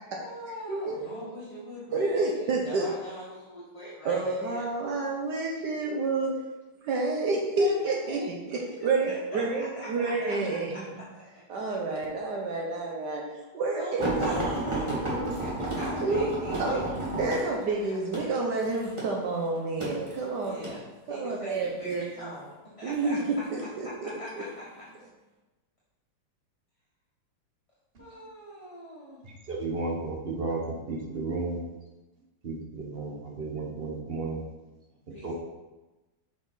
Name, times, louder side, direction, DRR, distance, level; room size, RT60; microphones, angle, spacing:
voice 1, 0.1-4.7 7.5-8.5 8.8-10.6 11.1-11.4 13.8-16.8 20.4-20.8 21.1-22.5 22.8-23.2 24.0-24.3 28.0-29.3 35.1-35.3, equal, 20° left, -9 dB, 1.3 m, -41 dB
voice 2, 0.7-1.0 1.9-2.9 4.0-6.3 6.8-11.0 11.5-14.5 15.0-15.3 16.0-16.8 17.2-20.6 21.1-22.0 22.8-24.1, right 3 dB, 65° right, -1 dB, 1.3 m, -29 dB
sound 1, 14.0-20.8 21.6-22.0 22.9-23.6 24.3-24.5 24.9-25.0, right 1 dB, 15° right, 1.3 m, -32 dB
voice 3, 29.2-31.6 32.4-34.4 35.2-35.3, right 3 dB, 40° right, -1 dB, 0.9 m, -33 dB
6.5 x 5.1 x 4.0 m, 1.1 s
omnidirectional pair, 2.1 m